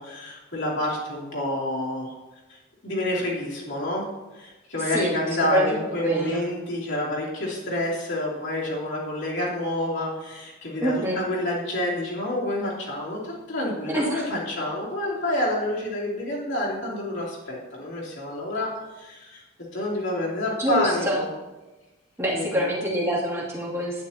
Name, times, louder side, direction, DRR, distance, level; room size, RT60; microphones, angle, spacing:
voice 1, 0.0-2.1 2.5-4.1 4.3-19.4 19.7-21.3 22.3-22.7, left 1 dB, 60° left, -5 dB, 3.1 m, -28 dB
voice 2, 4.7-5.1 5.4-6.4 10.8-11.2 13.9-14.2 20.6-21.2 22.2-24.0, equal, 15° right, -5 dB, 2.4 m, -26 dB
11.5 x 9.4 x 2.9 m, 1.1 s
head